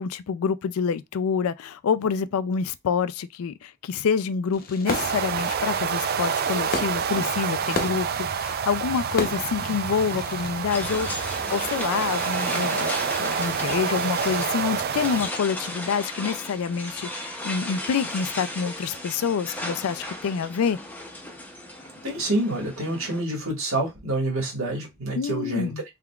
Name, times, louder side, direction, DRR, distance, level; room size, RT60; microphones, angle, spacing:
voice 1, 0.0-12.9 13.2-20.8 25.1-25.8, left 6 dB, 75° left, 0.4 m, -27 dB
Fireworks, 4.5-10.5, left 3 dB, 45° left, 0.7 m, -35 dB
sound 1, 4.9-15.3, right 7 dB, 45° right, 0.4 m, -28 dB
sound 2, 10.7-23.2, left 1 dB, 10° left, 0.6 m, -35 dB
voice 2, 22.0-25.7, right 2 dB, 65° right, 1.7 m, -27 dB
3.6 x 3.4 x 2.3 m
head